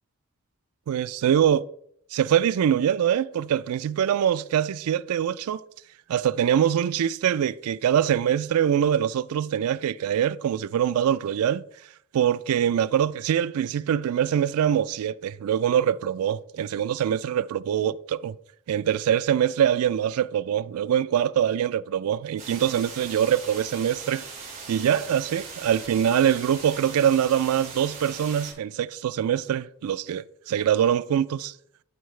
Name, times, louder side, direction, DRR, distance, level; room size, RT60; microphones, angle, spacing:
voice 1, 0.9-1.6 2.1-5.6 6.1-11.6 12.1-18.3 18.7-24.2 24.7-31.5, right 9 dB, 85° right, 0.3 m, -24 dB
sound 1, 22.4-28.5, right 5 dB, 30° right, 2.5 m, -40 dB
11.5 x 4.6 x 3.2 m
head